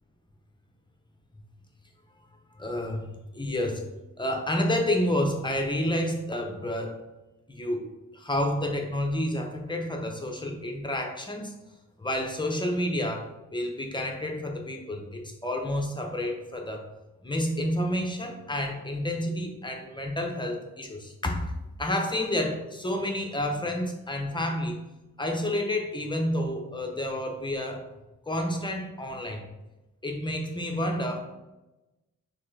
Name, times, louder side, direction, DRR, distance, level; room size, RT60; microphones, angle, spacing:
voice 1, 2.5-3.1 3.3-3.8 4.2-7.0 7.5-7.9 8.1-11.5 12.0-16.9 17.2-21.5 21.8-24.8 25.2-27.8 28.3-29.4 30.0-31.2, left 1 dB, 15° left, 2 dB, 0.6 m, -29 dB
4.2 x 3.3 x 3.3 m, 1.0 s
wide cardioid pair, 125°, 32 cm